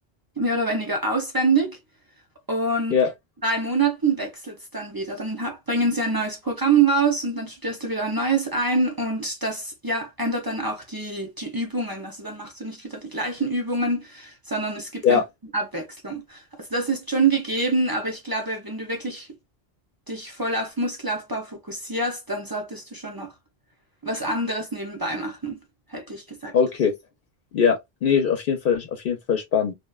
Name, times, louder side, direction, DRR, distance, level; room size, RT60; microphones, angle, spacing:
voice 1, 0.4-1.8 2.5-3.0 3.4-15.2 15.5-19.3 20.1-23.3 24.0-25.6 25.9-26.5, right 3 dB, 30° right, 0.4 m, -26 dB
voice 2, 26.5-26.9 27.5-29.7, left 6 dB, 65° left, 0.7 m, -21 dB
2.7 x 2.1 x 2.2 m
omnidirectional pair, 1.0 m